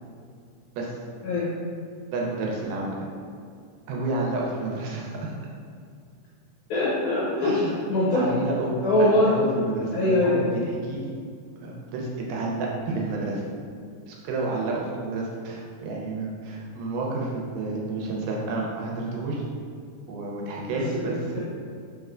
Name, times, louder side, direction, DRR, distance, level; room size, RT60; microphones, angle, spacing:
voice 1, 2.1-2.9 3.9-5.3 7.4-7.7 8.1-8.7 9.0-11.1 11.6-13.4 14.1-19.4 20.1-21.4, right 2 dB, 90° right, -3 dB, 2.3 m, -30 dB
voice 2, 6.7-7.6 7.9-8.2 8.8-9.3 9.9-10.4 20.9-21.4, left 1 dB, 75° left, -8 dB, 1.9 m, -22 dB
5.0 x 3.2 x 2.4 m, 2.2 s
omnidirectional pair, 3.7 m